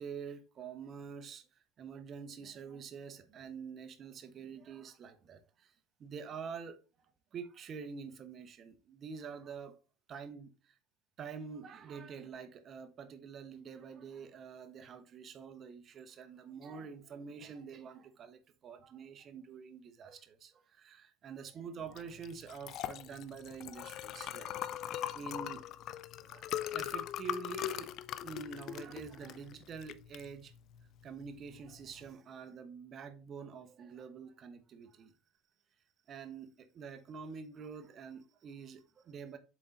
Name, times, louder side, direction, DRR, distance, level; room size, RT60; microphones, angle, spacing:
voice 1, 0.0-6.8 7.3-9.8 10.1-10.8 11.2-24.5 25.1-25.6 26.2-27.9 28.2-30.5 31.0-35.1 36.1-39.4, right 6 dB, 40° right, 1.0 m, -47 dB
Liquid, 21.9-32.1, left 12 dB, 55° left, 0.5 m, -41 dB
7.5 x 3.9 x 4.0 m
supercardioid pair, 105°, 0 cm